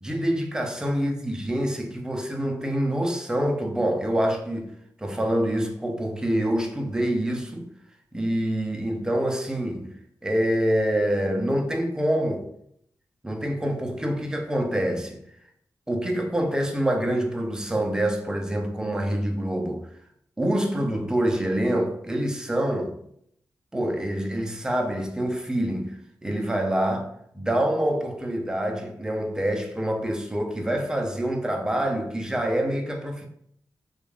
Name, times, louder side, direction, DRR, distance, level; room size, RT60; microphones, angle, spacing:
voice 1, 0.0-4.7 5.0-7.7 8.1-10.0 10.2-12.5 13.2-15.2 15.9-19.9 20.4-23.0 23.7-25.9 26.2-27.1 27.3-33.3, right 1 dB, 10° right, 0.4 m, -26 dB
2.2 x 2.1 x 3.1 m
wide cardioid pair, 100°, 7 cm